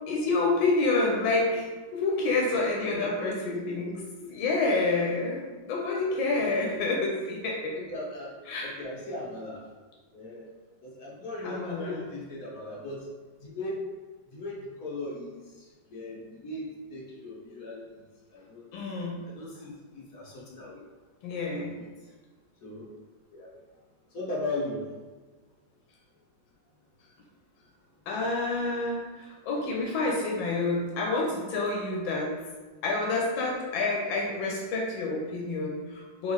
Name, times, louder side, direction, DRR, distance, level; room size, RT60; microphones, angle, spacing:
voice 1, 0.1-3.9 4.3-7.8 8.5-8.8 11.4-12.1 18.7-19.2 21.2-21.7 28.1-32.3 32.8-36.3, left 3 dB, 90° left, -2 dB, 1.4 m, -28 dB
voice 2, 2.0-3.9 5.1-5.2 6.1-6.8 7.8-8.3 8.6-9.6 10.1-10.4 10.8-13.1 13.4-13.8 14.3-17.8 18.3-18.7 19.3-20.8 21.5-21.7 22.6-22.9 23.3-23.5 24.1-24.8 34.0-34.4, left 2 dB, 55° left, -3 dB, 1.0 m, -38 dB
3.7 x 3.1 x 3.9 m, 1.3 s
omnidirectional pair, 2.1 m